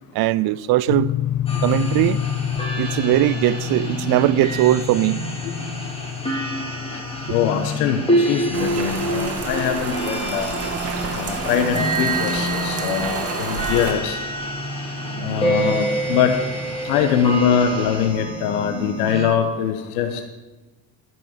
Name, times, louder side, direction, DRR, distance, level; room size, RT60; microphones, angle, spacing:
voice 1, 0.1-1.1 1.6-2.2 2.8-5.2, right 15 dB, 60° right, 0.5 m, -19 dB
sound 1, 0.9-11.0, left 11 dB, 55° left, 0.6 m, -29 dB
sound 2, 1.5-19.2, right 1 dB, 15° left, 3.8 m, -27 dB
voice 2, 7.3-10.5 11.2-14.2 15.2-16.3 16.8-20.2, left 8 dB, 90° left, 1.1 m, -22 dB
Rain, 8.5-13.9, right 4 dB, 35° right, 2.4 m, -29 dB
14.0 x 6.2 x 7.3 m
supercardioid pair, 85°, 43 cm